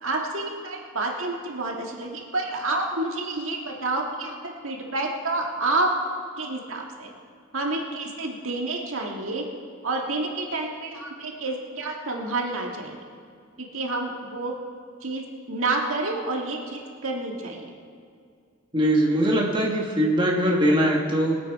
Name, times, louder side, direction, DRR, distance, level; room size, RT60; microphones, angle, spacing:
voice 1, 0.0-5.9 6.4-7.1 7.5-9.4 9.8-13.0 13.6-14.5 15.0-17.6, right 2 dB, 70° right, 0 dB, 1.7 m, -29 dB
voice 2, 18.7-21.4, equal, 20° right, -1 dB, 1.2 m, -21 dB
21.0 x 8.5 x 4.6 m, 2.3 s
head